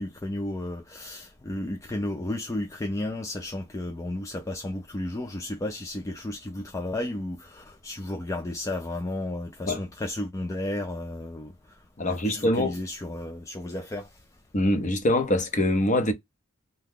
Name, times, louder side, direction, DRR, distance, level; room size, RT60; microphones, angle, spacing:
voice 1, 0.0-14.2, left 1 dB, 15° left, 0.3 m, -33 dB
voice 2, 12.0-12.7 14.5-16.1, left 1 dB, 35° left, 0.8 m, -24 dB
2.8 x 2.2 x 3.5 m
head